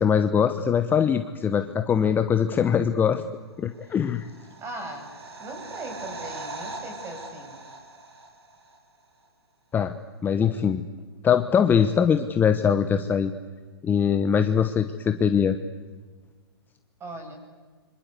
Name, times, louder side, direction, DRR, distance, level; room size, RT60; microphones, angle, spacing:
voice 1, 0.0-3.2 3.6-4.3 9.7-9.9 10.2-10.8 11.2-13.3 13.8-15.6, left 7 dB, 15° left, 9 dB, 1.1 m, -22 dB
sound 1, 3.9-8.8 9.0-9.1, right 2 dB, 75° right, 6.0 m, -40 dB
voice 2, 4.6-5.1 5.4-7.6 10.4-10.7 17.0-17.4, right 2 dB, 20° right, 5 dB, 7.4 m, -39 dB
28.0 x 25.5 x 8.3 m, 1.4 s
hypercardioid pair, 135°, 13 cm